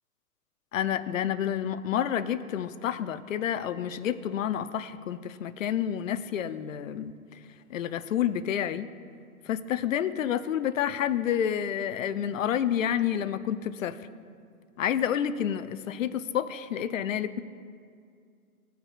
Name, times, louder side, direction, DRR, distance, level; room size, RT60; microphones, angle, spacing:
voice 1, 0.7-7.1 7.7-8.9 9.5-14.0 14.8-17.4, left 9 dB, 60° left, 14 dB, 0.6 m, -29 dB
18.0 x 9.1 x 2.4 m, 2.3 s
figure-of-eight pair, 120°, 44 cm